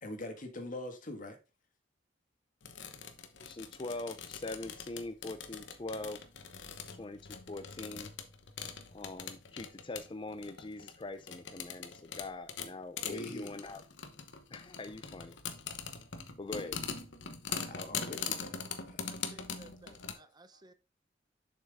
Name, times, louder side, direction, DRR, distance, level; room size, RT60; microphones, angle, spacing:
voice 1, 0.0-1.4 13.0-13.6 17.5-18.6 18.9-19.4 20.1-20.3, left 1 dB, 45° left, 1.7 m, -44 dB
sound 1, 2.6-20.1, left 6 dB, 75° left, 1.0 m, -43 dB
voice 2, 3.4-6.2 7.0-8.1 8.9-13.8 14.5-15.4 16.4-16.8, left 2 dB, 25° left, 0.5 m, -42 dB
voice 3, 19.1-20.7, right 2 dB, 25° right, 0.7 m, -58 dB
7.3 x 6.0 x 3.5 m
head